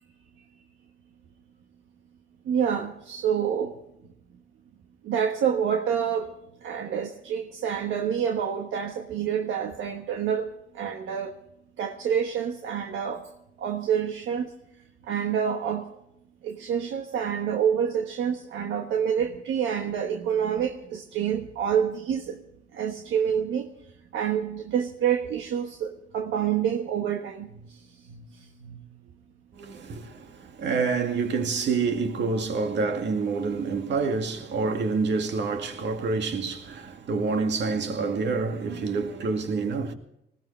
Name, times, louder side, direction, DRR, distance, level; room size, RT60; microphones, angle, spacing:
voice 1, 2.4-3.8 5.0-6.3 6.6-10.5 10.7-11.3 11.8-13.3 13.6-14.5 15.0-15.9 16.4-22.4 22.7-23.7 24.1-27.8 28.1-28.2 28.6-28.8, right 8 dB, 80° right, 1.3 m, -27 dB
voice 2, 29.6-39.9, right 4 dB, 60° right, 2.2 m, -27 dB
20.0 x 17.5 x 3.3 m
cardioid pair, 90°, 20 cm